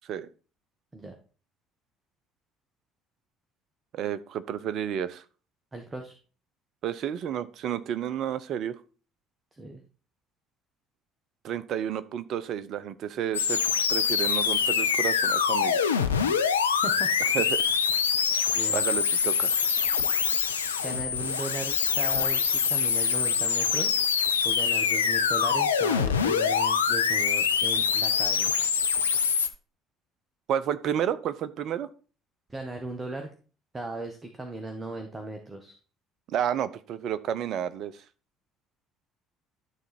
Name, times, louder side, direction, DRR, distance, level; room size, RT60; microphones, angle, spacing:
voice 1, 3.9-5.2 6.8-8.8 11.4-13.6 13.9-15.8 17.2-17.6 18.3-18.4 18.7-19.6 30.5-31.9 36.3-38.0, right 9 dB, 55° right, 15 dB, 0.7 m, -31 dB
voice 2, 5.7-6.2 9.6-9.8 16.8-17.4 18.5-18.8 20.8-24.0 24.4-28.5 32.5-33.3 33.7-35.7, right 2 dB, 25° right, 5 dB, 1.5 m, -37 dB
sound 1, 13.3-29.5, left 6 dB, 85° left, 0.5 m, -25 dB
12.5 x 4.2 x 4.3 m, 0.37 s
figure-of-eight pair, 55°, 0 cm